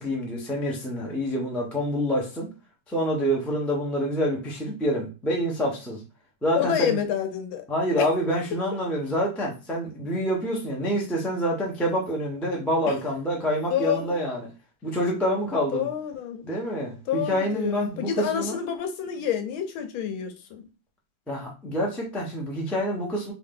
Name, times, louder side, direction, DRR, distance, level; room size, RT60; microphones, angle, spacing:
voice 1, 0.0-2.5 2.9-6.0 6.4-7.0 7.7-14.5 14.8-15.9 16.4-18.6 21.3-23.3, equal, ahead, 0.3 m, -27 dB
voice 2, 6.5-7.6 8.0-8.1 12.9-13.0 13.7-14.2 15.7-16.4 17.1-20.7, left 9 dB, 80° left, 1.5 m, -28 dB
3.1 x 2.8 x 3.7 m
omnidirectional pair, 2.2 m